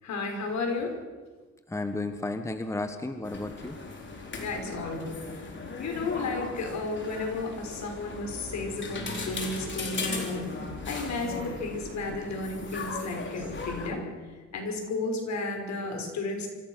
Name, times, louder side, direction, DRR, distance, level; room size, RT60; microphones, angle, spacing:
voice 1, 0.0-1.0 4.4-5.5 5.8-14.0 14.5-16.5, left 3 dB, 65° left, 3 dB, 5.7 m, -33 dB
voice 2, 1.7-3.8, left 2 dB, 10° left, 8 dB, 1.4 m, -33 dB
sound 1, 3.2-13.9, left 3 dB, 40° left, 4.3 m, -37 dB
26.0 x 16.0 x 6.5 m, 1.3 s
cardioid pair, 90°, 30 cm